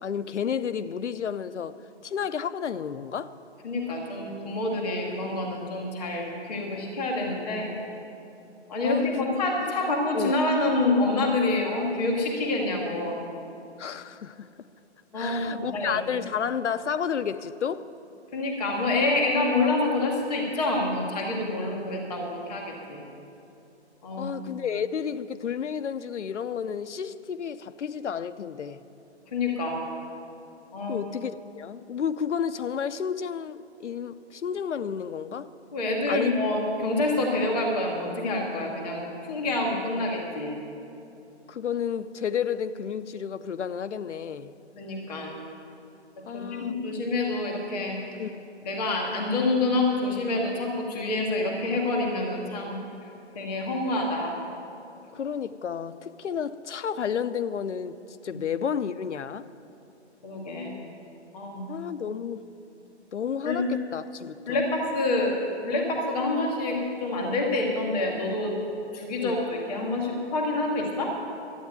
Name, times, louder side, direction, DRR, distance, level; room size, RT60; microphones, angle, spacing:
voice 1, 0.0-3.3 8.8-9.3 10.1-10.3 13.8-14.5 15.1-17.9 24.2-28.8 30.9-35.5 36.1-36.3 41.5-44.5 46.3-46.7 48.2-48.4 55.1-58.0 58.2-59.5 61.7-62.5 63.1-64.6 69.2-69.4, left 7 dB, 85° left, 0.7 m, -31 dB
voice 2, 3.6-7.7 8.7-13.2 15.1-16.0 18.3-23.0 24.0-24.3 29.3-29.8 30.7-31.0 35.7-40.5 44.8-45.4 46.3-48.0 48.6-52.8 53.3-54.4 58.3-58.4 60.2-60.7 61.3-61.7 63.4-63.6 64.5-65.3 65.6-68.5 68.9-71.1, left 2 dB, ahead, 0.4 m, -27 dB
12.5 x 9.0 x 9.2 m
hypercardioid pair, 155°, 34 cm